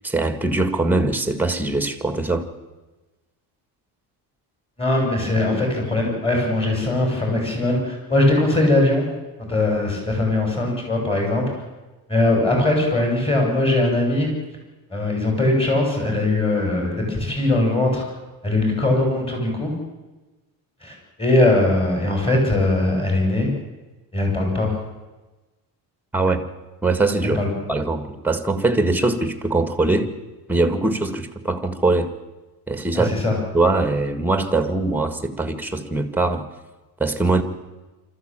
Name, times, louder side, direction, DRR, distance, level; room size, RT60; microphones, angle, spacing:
voice 1, 0.0-2.5 26.1-26.4 26.8-27.4 27.7-30.1 30.5-32.1 32.7-33.2 33.5-36.4 37.0-37.4, right 2 dB, 5° right, 9 dB, 1.8 m, -21 dB
voice 2, 4.8-9.1 9.4-11.5 12.1-14.3 14.9-18.0 18.4-19.7 20.8-23.5 24.1-24.7 27.3-27.5 32.9-33.4, left 2 dB, 15° left, 1 dB, 7.3 m, -20 dB
25.5 x 14.0 x 9.0 m, 1.1 s
cardioid pair, 140°, 39 cm